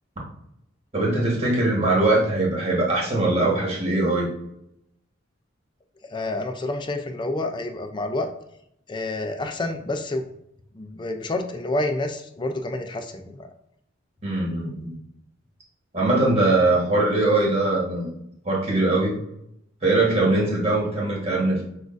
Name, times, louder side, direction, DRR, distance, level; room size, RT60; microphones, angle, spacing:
voice 1, 0.9-4.3 14.2-14.9 15.9-18.1 18.4-19.2 19.8-21.6, right 2 dB, 30° right, -4 dB, 1.3 m, -21 dB
voice 2, 6.0-8.3 8.9-10.2 10.7-13.5, left 2 dB, 25° left, 6 dB, 0.4 m, -28 dB
6.0 x 2.4 x 2.5 m, 0.75 s
head